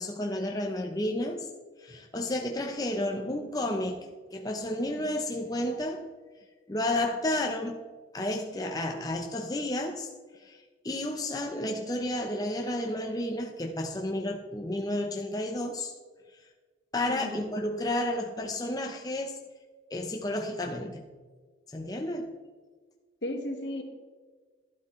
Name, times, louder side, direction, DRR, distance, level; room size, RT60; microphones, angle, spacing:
voice 1, 0.0-1.5 1.8-6.1 6.7-7.8 8.1-10.1 10.4-15.9 16.9-19.4 19.9-21.1 21.7-22.4, left 1 dB, 20° left, 2 dB, 0.6 m, -31 dB
voice 2, 17.1-17.4 23.2-23.8, left 1 dB, 70° left, 4 dB, 1.5 m, -35 dB
12.0 x 11.5 x 3.1 m, 1.5 s
head